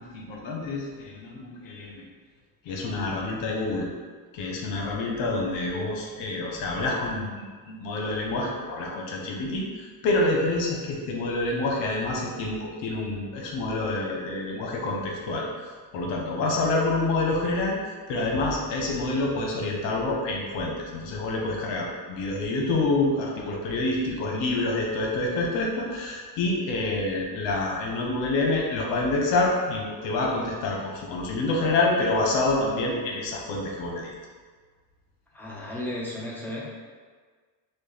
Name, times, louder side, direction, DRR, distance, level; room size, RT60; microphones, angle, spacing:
voice 1, 0.0-2.0 2.6-3.9 4.3-15.5 15.9-34.1, left 2 dB, 85° left, -1 dB, 1.0 m, -27 dB
voice 2, 35.3-36.6, left 1 dB, 5° left, -6 dB, 1.2 m, -34 dB
6.2 x 2.3 x 3.3 m, 1.5 s
cardioid pair, 105°, 44 cm